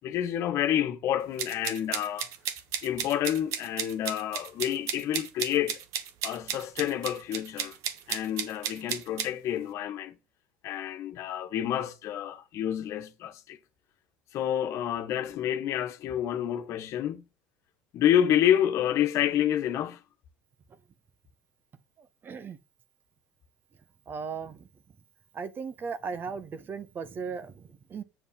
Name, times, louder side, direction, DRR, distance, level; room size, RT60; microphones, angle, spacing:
voice 1, 0.0-2.3 2.8-5.8 6.2-7.8 8.1-10.2 10.6-13.6 14.3-17.2 17.9-20.0, left 10 dB, 55° left, 1.4 m, -28 dB
sound 1, 1.4-9.3, right 9 dB, 60° right, 1.7 m, -34 dB
voice 2, 22.0-22.6 24.1-24.7 25.3-28.0, right 5 dB, 35° right, 1.4 m, -37 dB
7.9 x 7.0 x 5.4 m
hypercardioid pair, 85°, 6 cm